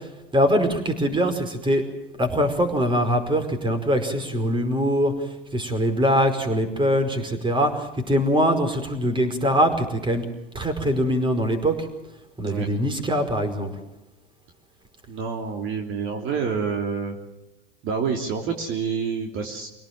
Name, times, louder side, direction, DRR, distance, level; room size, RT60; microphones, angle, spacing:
voice 1, 0.3-1.8 2.2-5.1 5.5-10.2 10.5-11.8 12.4-13.7, equal, 15° right, 7 dB, 5.0 m, -22 dB
voice 2, 15.1-17.2 17.8-19.7, right 6 dB, 45° right, 3 dB, 3.3 m, -28 dB
26.5 x 18.0 x 7.5 m, 0.97 s
hypercardioid pair, 95°, 29 cm